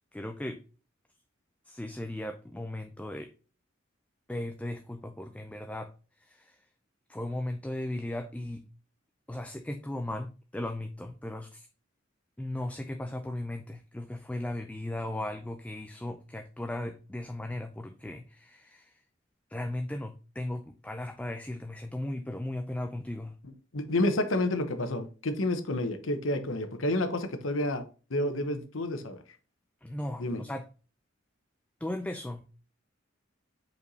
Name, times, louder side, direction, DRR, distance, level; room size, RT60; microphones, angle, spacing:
voice 1, 0.1-0.6 1.7-3.3 4.3-5.9 6.2-6.6 7.1-8.6 9.3-11.7 12.4-18.9 19.5-23.3 29.8-30.7 31.8-32.5, left 1 dB, 5° left, 0.4 m, -37 dB
voice 2, 23.7-27.8 28.1-29.2 30.2-30.4, left 1 dB, 80° left, 1.0 m, -29 dB
5.3 x 4.6 x 4.0 m
head